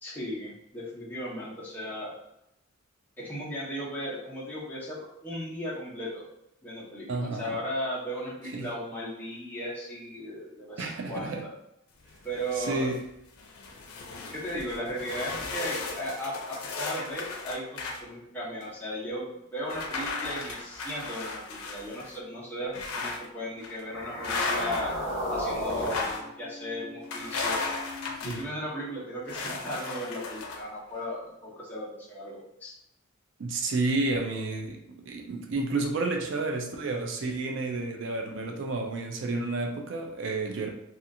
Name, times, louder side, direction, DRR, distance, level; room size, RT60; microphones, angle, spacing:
voice 1, 0.0-2.1 3.2-5.0 5.2-6.3 6.6-11.5 12.2-12.9 14.3-24.9 25.3-27.7 28.2-32.7, equal, 10° left, -7 dB, 0.7 m, -36 dB
voice 2, 7.1-7.6 8.5-8.7 10.8-11.4 12.6-13.0 28.2-28.4 33.4-34.8 35.1-40.7, right 3 dB, 60° right, 3 dB, 0.4 m, -30 dB
sound 1, 12.1-13.0 13.4-18.0 18.6-18.7 19.7-22.2 22.7-23.3 23.6-23.8 24.2-25.0 25.7-26.3 27.1-28.5 29.3-30.7, left 3 dB, 90° left, 0.5 m, -35 dB
sound 2, 23.8-28.1, equal, 60° left, 0.8 m, -35 dB
2.8 x 2.4 x 2.5 m, 0.83 s
head